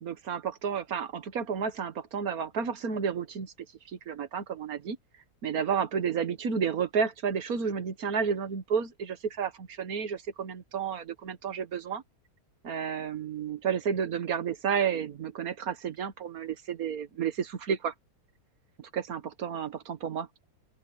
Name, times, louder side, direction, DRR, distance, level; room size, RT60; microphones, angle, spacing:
voice 1, 0.0-3.5 3.9-5.0 5.4-12.0 12.6-17.9 18.9-20.3, right 7 dB, 65° right, 1.8 m, -31 dB
open air
omnidirectional pair, 1.6 m